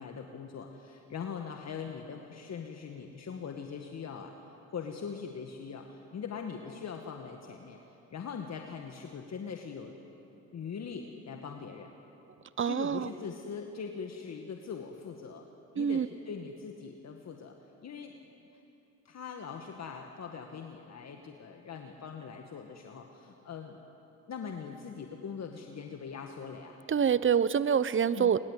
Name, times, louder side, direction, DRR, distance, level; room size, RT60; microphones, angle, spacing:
voice 1, 0.0-4.3 4.7-7.8 8.1-10.0 10.5-11.9 12.7-15.4 15.7-17.5 17.8-18.1 19.1-23.8 24.3-26.8 28.1-28.3, left 6 dB, 50° left, 3 dB, 2.0 m, -41 dB
voice 2, 12.6-13.1 15.8-16.1 26.9-28.4, right 7 dB, 35° right, 16 dB, 1.0 m, -26 dB
26.0 x 22.0 x 8.4 m, 2.9 s
supercardioid pair, 65°, 35 cm